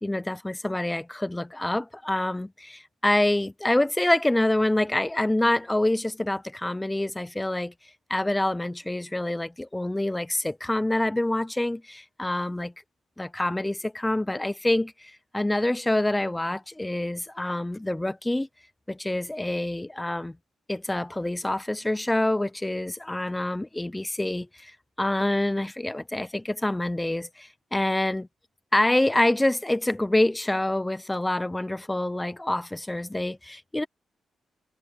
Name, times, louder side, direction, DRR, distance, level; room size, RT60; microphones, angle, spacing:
voice 1, 0.0-7.7 8.1-12.7 13.2-18.5 18.9-20.4 20.7-28.3 28.7-33.9, left 1 dB, 10° left, 0.6 m, -26 dB
cardioid pair, 130°, 0 cm